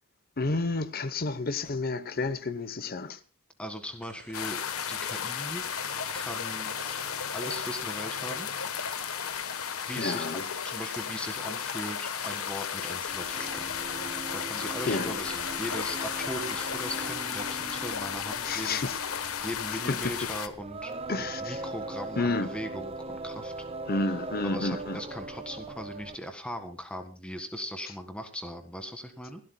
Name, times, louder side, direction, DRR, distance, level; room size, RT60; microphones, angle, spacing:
voice 1, 0.4-3.2 10.0-10.4 14.9-15.2 18.4-19.0 19.9-20.0 21.1-21.6 22.2-22.6 23.9-25.0, left 3 dB, 45° left, 0.8 m, -30 dB
voice 2, 3.6-4.6 4.9-5.6 6.1-6.8 7.3-8.5 9.8-10.4 10.6-13.8 14.3-20.9 21.4-23.5 24.4-29.4, equal, 5° left, 1.7 m, -39 dB
sound 1, 4.0-17.6, right 4 dB, 65° right, 5.0 m, -50 dB
sound 2, 4.3-20.5, left 7 dB, 80° left, 1.1 m, -34 dB
Singing, 13.1-26.3, right 2 dB, 25° right, 0.6 m, -40 dB
29.0 x 12.5 x 2.2 m
head